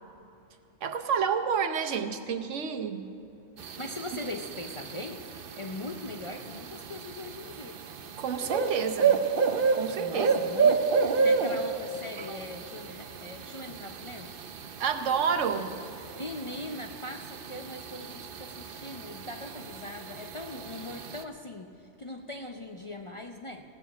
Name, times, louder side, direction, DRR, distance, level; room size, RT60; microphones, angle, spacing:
voice 1, 0.8-3.1 8.2-9.2 9.7-10.4 12.2-12.4 14.8-15.7, right 6 dB, 80° right, 7 dB, 1.2 m, -29 dB
sound 1, 3.6-21.2, right 5 dB, 55° right, 0.8 m, -31 dB
voice 2, 3.7-5.2 5.6-7.8 10.0-14.3 16.1-21.7 22.0-23.6, left 2 dB, 40° left, 3 dB, 0.5 m, -40 dB
16.5 x 7.2 x 8.4 m, 2.7 s
omnidirectional pair, 1.2 m